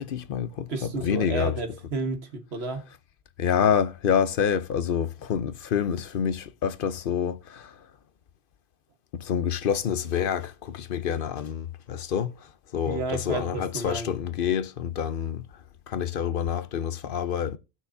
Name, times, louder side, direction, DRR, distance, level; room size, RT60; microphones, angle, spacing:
voice 1, 0.0-0.7 1.0-1.5 3.4-7.7 9.2-12.3 12.7-15.4 15.9-17.6, left 8 dB, 65° left, 0.8 m, -27 dB
voice 2, 0.7-2.8 12.8-14.1, right 3 dB, 85° right, 1.6 m, -32 dB
18.0 x 6.1 x 2.7 m
omnidirectional pair, 1.0 m